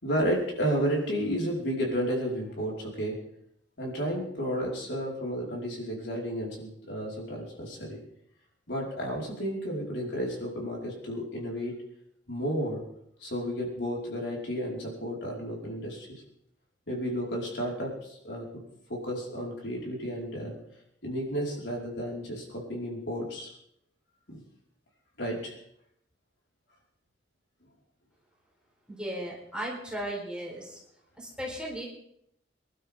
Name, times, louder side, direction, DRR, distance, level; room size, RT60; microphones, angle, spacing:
voice 1, 0.0-3.2 3.8-8.0 8.7-11.7 12.3-12.8 13.2-16.2 16.9-18.6 18.9-20.5 21.0-23.5 24.3-24.4 25.2-25.5, equal, 75° left, -3 dB, 5.2 m, -32 dB
voice 2, 28.9-30.8 31.2-31.9, right 1 dB, 5° right, -4 dB, 4.5 m, -36 dB
25.0 x 12.0 x 3.8 m, 0.73 s
head